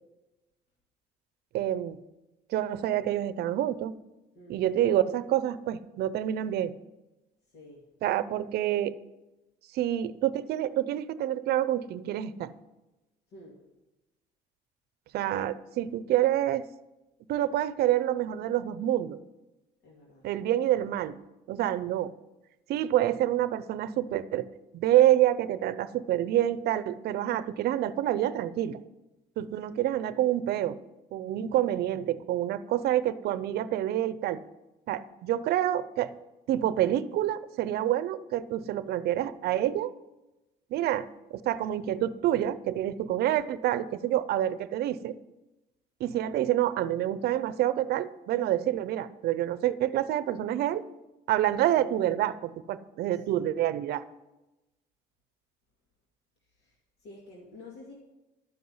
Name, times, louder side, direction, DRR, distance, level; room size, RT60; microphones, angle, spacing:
voice 1, 1.5-2.0 2.5-3.9 4.5-6.7 8.0-8.9 9.7-12.5 15.1-16.6 17.3-19.2 20.2-21.1 21.5-22.1 22.7-24.5 24.7-28.8 29.4-30.8 31.1-34.4 34.9-36.1 36.5-39.9 40.7-45.1 46.0-50.8 51.3-54.0, right 12 dB, 70° right, 15 dB, 0.6 m, -27 dB
voice 2, 7.5-7.8 13.3-13.6 19.8-20.3 29.7-29.8 53.1-53.2 56.5-56.7 57.0-57.9, left 2 dB, 90° left, -2 dB, 2.1 m, -50 dB
12.0 x 5.4 x 7.8 m, 1.0 s
cardioid pair, 110°, 17 cm